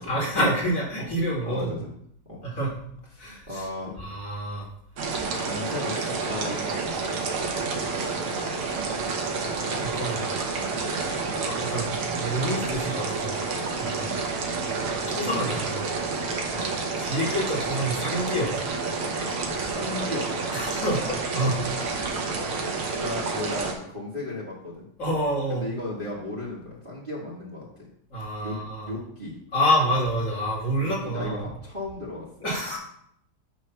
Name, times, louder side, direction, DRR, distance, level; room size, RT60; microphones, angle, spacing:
voice 1, 0.1-1.7 2.4-2.7 3.2-3.7 4.0-4.7 9.7-10.3 11.4-13.4 13.8-14.1 14.7-15.9 17.0-18.6 20.5-22.1 25.0-25.6 28.1-28.9 29.5-31.5 32.4-32.8, equal, 40° left, -4 dB, 2.3 m, -28 dB
voice 2, 1.4-1.9 2.3-2.4 3.1-4.0 5.4-7.0 14.1-14.2 16.5-16.7 19.6-20.3 22.9-24.9 25.5-27.9 28.4-28.6 28.8-29.3 30.8-32.2, left 2 dB, 30° right, -6 dB, 1.6 m, -35 dB
sound 1, 5.0-23.7, right 4 dB, 90° right, 2.0 m, -29 dB
9.4 x 3.2 x 5.7 m, 0.67 s
omnidirectional pair, 2.3 m